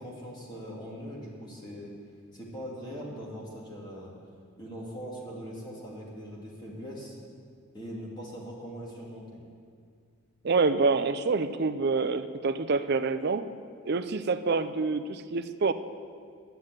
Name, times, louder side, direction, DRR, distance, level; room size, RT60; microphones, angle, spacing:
voice 1, 0.0-1.9 2.3-4.1 4.6-7.2 7.7-9.2, equal, 20° left, -4 dB, 2.2 m, -41 dB
voice 2, 10.4-13.5 13.9-15.7, right 4 dB, 50° right, 11 dB, 0.5 m, -27 dB
11.0 x 8.0 x 8.9 m, 2.2 s
head